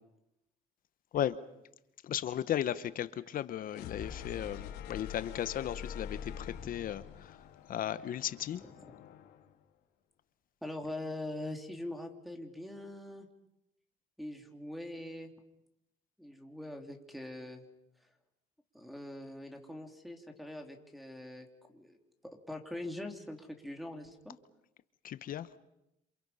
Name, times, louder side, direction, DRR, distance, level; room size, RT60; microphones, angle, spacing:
voice 1, 2.0-7.4 7.7-8.6 25.0-25.5, left 11 dB, 55° left, 14 dB, 1.0 m, -35 dB
sound 1, 3.7-9.5, left 8 dB, 85° left, 2.6 m, -45 dB
voice 2, 10.6-13.3 14.2-15.3 16.2-17.6 18.7-21.5 21.7-22.0 22.3-24.4, left 1 dB, ahead, 2 dB, 3.1 m, -43 dB
27.5 x 27.5 x 5.6 m, 0.84 s
cardioid pair, 110°, 17 cm